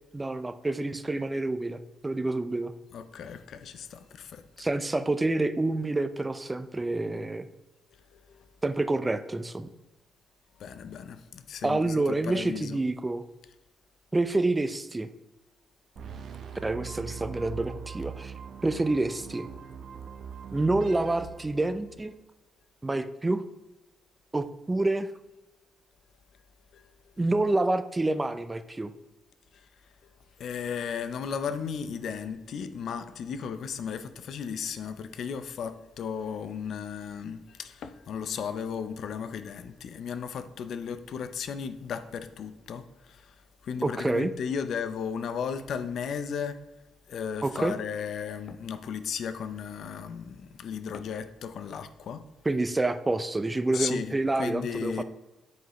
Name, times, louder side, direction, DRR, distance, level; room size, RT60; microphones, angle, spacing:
voice 1, 0.1-2.7 4.6-7.5 8.6-9.7 11.6-13.2 14.1-15.1 16.6-18.3 18.6-19.5 20.5-22.1 22.8-23.4 24.3-25.1 27.2-28.9 43.8-44.3 47.4-47.7 52.4-55.0, right 2 dB, 20° right, 0.4 m, -28 dB
voice 2, 2.9-4.4 8.1-8.5 10.6-11.9 12.2-12.8 26.7-26.9 30.4-43.3 43.6-46.6 47.1-52.2 53.7-54.1 54.4-55.0, left 7 dB, 65° left, 0.5 m, -35 dB
sound 1, 16.0-22.1, right 7 dB, 60° right, 0.6 m, -42 dB
7.8 x 4.9 x 3.0 m
cardioid pair, 90°, 0 cm